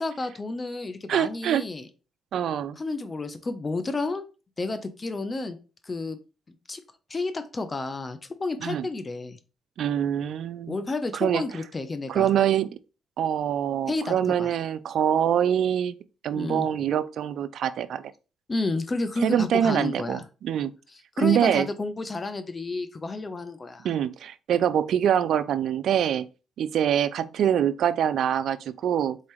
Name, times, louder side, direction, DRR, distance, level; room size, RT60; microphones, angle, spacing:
voice 1, 0.0-1.9 2.8-4.2 4.6-5.6 5.8-6.2 6.5-6.8 7.1-9.4 10.7-12.3 13.9-14.5 16.3-16.7 18.5-20.2 21.2-23.9, left 3 dB, 30° left, 0.7 m, -31 dB
voice 2, 1.1-1.7 2.3-2.8 8.6-8.9 9.8-10.8 11.1-11.4 12.1-12.7 13.2-15.9 16.2-18.0 19.2-20.7 21.2-21.7 23.8-26.3 26.6-29.2, right 9 dB, 70° right, 0.3 m, -24 dB
3.9 x 3.8 x 3.1 m
supercardioid pair, 65°, 0 cm